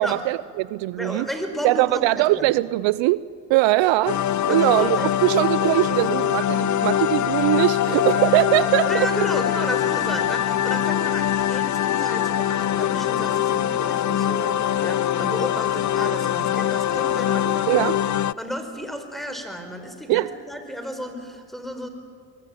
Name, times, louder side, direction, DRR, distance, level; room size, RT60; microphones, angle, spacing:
voice 1, 0.0-1.3 1.6-4.2 4.5-9.1 17.7-18.0 20.1-20.3, right 18 dB, 75° right, 0.6 m, -21 dB
voice 2, 1.0-2.5 4.5-5.1 8.8-17.9 18.4-21.9, equal, ahead, 4.7 m, -33 dB
sound 1, 4.1-18.3, left 11 dB, 40° left, 0.6 m, -23 dB
22.0 x 19.5 x 9.1 m
supercardioid pair, 55°, 45 cm